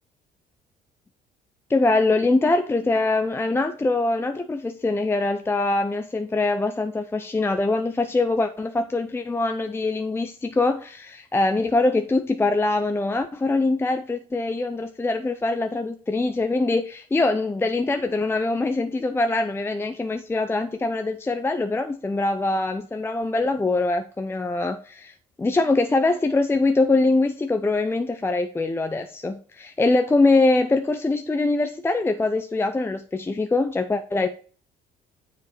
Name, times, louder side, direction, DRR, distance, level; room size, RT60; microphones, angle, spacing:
voice 1, 1.7-34.3, left 2 dB, 15° left, 0.6 m, -23 dB
7.3 x 5.2 x 4.2 m
cardioid pair, 110°, 17 cm